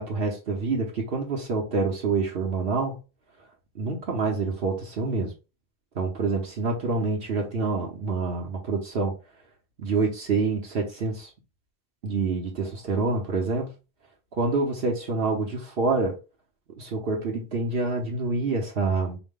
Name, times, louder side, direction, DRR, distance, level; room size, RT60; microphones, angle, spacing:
voice 1, 0.0-3.0 3.8-5.3 5.9-9.1 9.8-11.3 12.0-13.7 14.3-16.1 16.8-19.2, right 3 dB, 60° right, 1.0 m, -27 dB
4.8 x 2.1 x 3.6 m
omnidirectional pair, 1.1 m